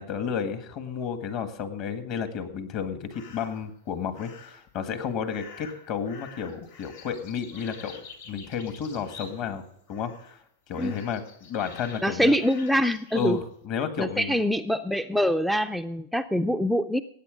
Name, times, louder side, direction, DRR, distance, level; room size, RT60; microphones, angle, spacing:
voice 1, 0.0-10.1 10.7-12.4 13.1-14.4, left 7 dB, 45° left, 8 dB, 1.8 m, -32 dB
sound 1, 3.1-3.7 4.1-4.7 5.3-9.6 9.9-10.4 10.7-13.4, left 6 dB, 85° left, 3.3 m, -47 dB
voice 2, 12.0-13.4 14.0-17.0, equal, ahead, 10 dB, 0.4 m, -24 dB
16.5 x 9.0 x 5.2 m, 0.73 s
supercardioid pair, 135°, 0 cm